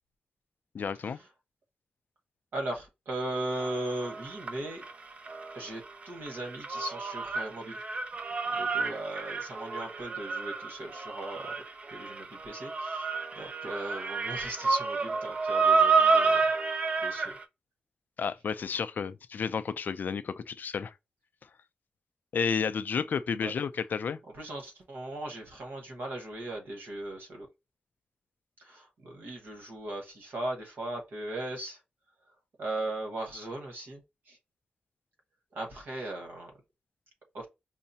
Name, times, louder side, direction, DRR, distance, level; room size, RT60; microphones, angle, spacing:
voice 1, 0.7-1.2 18.2-20.9 22.3-24.2, left 6 dB, 60° left, 0.3 m, -31 dB
voice 2, 2.5-4.8 5.5-7.8 8.4-11.5 11.9-17.4 23.4-23.5 24.3-27.5 28.6-31.8 32.6-34.4 35.5-36.5 37.3-37.5, right 1 dB, 75° right, 1.2 m, -38 dB
sound 1, 3.6-5.6 5.9-17.4, right 4 dB, 40° right, 0.4 m, -29 dB
5.5 x 2.0 x 2.7 m
wide cardioid pair, 145°, 3 cm